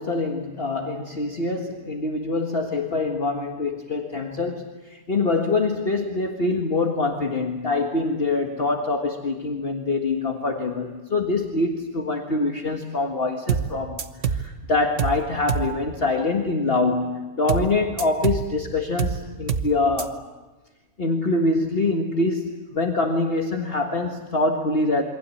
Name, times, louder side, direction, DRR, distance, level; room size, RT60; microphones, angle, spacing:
voice 1, 0.0-20.2 21.0-25.0, left 3 dB, 45° left, 2 dB, 1.9 m, -24 dB
sound 1, 13.5-13.7 14.0-14.5 15.0-15.2 15.5-15.7 17.5-17.7 18.0-18.5 19.0-19.2 19.5-19.7 20.0-20.1, right 7 dB, 60° right, 1.5 m, -25 dB
28.0 x 24.0 x 8.5 m, 1.2 s
omnidirectional pair, 1.5 m